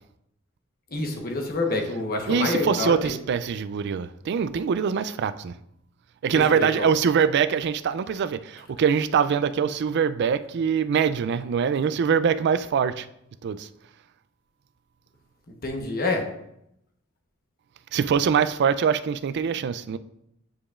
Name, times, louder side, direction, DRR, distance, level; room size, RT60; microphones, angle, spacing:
voice 1, 0.9-3.1 6.3-6.9 15.6-16.2, left 2 dB, 45° left, 1.1 m, -27 dB
voice 2, 2.3-5.5 6.2-13.1 13.4-13.7 17.9-20.0, right 7 dB, 55° right, 0.3 m, -23 dB
9.2 x 4.9 x 2.4 m
head